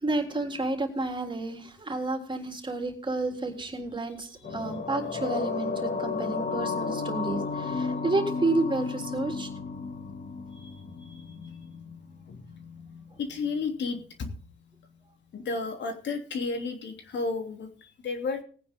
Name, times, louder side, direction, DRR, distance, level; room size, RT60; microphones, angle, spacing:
voice 1, 0.0-9.5, right 2 dB, 25° right, 3 dB, 3.6 m, -30 dB
sound 1, 4.4-13.1 13.3-13.5, left 4 dB, 50° left, 2.0 m, -34 dB
voice 2, 13.2-14.3 15.3-17.7 18.0-18.4, left 4 dB, 65° left, 5 dB, 3.0 m, -32 dB
19.0 x 9.5 x 3.7 m, 0.42 s
cardioid pair, 90°, 20 cm